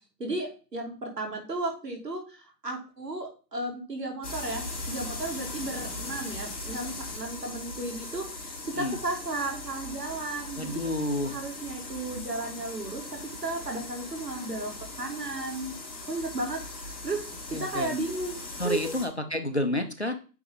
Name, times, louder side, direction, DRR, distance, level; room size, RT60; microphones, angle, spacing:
voice 1, 0.2-10.9 11.3-13.0 13.4-14.7 15.0-15.7 16.1-17.2 17.5-18.9, right 2 dB, 70° right, 2 dB, 2.8 m, -34 dB
sound 1, 4.2-19.1, left 2 dB, 65° left, 2.8 m, -39 dB
voice 2, 10.6-11.3 17.5-18.0 18.6-20.1, left 1 dB, 40° left, 7 dB, 0.6 m, -30 dB
8.7 x 3.6 x 3.8 m, 0.35 s
figure-of-eight pair, 175°, 50 cm